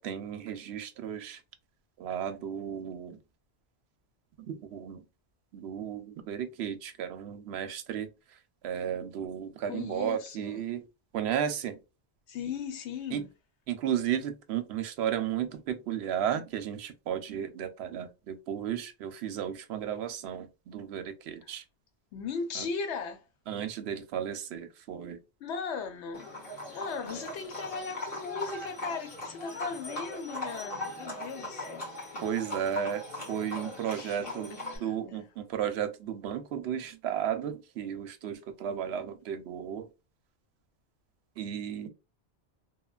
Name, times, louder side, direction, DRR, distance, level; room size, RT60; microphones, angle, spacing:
voice 1, 0.0-1.4 2.0-3.2 4.5-5.0 5.5-10.8 11.1-11.8 13.1-13.3 13.7-21.6 22.5-22.7 23.5-25.2 27.0-27.2 32.2-39.9 41.4-41.9, right 9 dB, 70° right, 0.8 m, -34 dB
voice 2, 9.7-10.6 12.3-13.3 22.1-23.3 25.4-26.3 26.7-32.4 33.9-34.3 34.6-35.2, left 5 dB, 80° left, 0.9 m, -38 dB
Livestock farm animals working animals, 26.1-34.8, left 1 dB, 55° left, 1.9 m, -39 dB
3.1 x 2.2 x 2.2 m
omnidirectional pair, 1.2 m